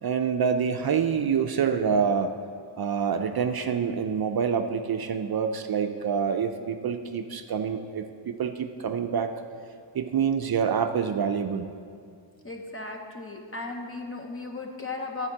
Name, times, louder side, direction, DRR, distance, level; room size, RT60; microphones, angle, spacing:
voice 1, 0.0-2.3 2.8-9.3 9.9-11.7, right 6 dB, 55° right, 7 dB, 0.5 m, -26 dB
voice 2, 12.4-15.3, left 3 dB, 30° left, 3 dB, 0.9 m, -36 dB
12.5 x 4.4 x 7.2 m, 2.3 s
wide cardioid pair, 155°, 47 cm